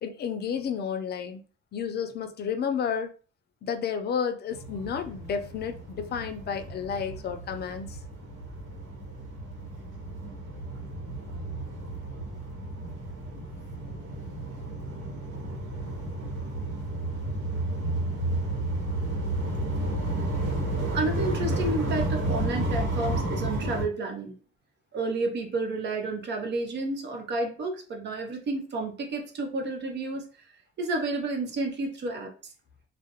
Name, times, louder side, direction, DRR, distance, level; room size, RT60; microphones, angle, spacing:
voice 1, 0.0-1.4 1.7-3.1 3.6-8.0, left 7 dB, 55° left, 0.4 m, -31 dB
sound 1, 4.5-23.8, right 1 dB, 85° right, 0.9 m, -32 dB
voice 2, 20.9-24.3 24.9-30.2 30.8-32.5, right 2 dB, 60° right, 0.7 m, -31 dB
2.4 x 2.0 x 2.8 m
cardioid pair, 90°, 20 cm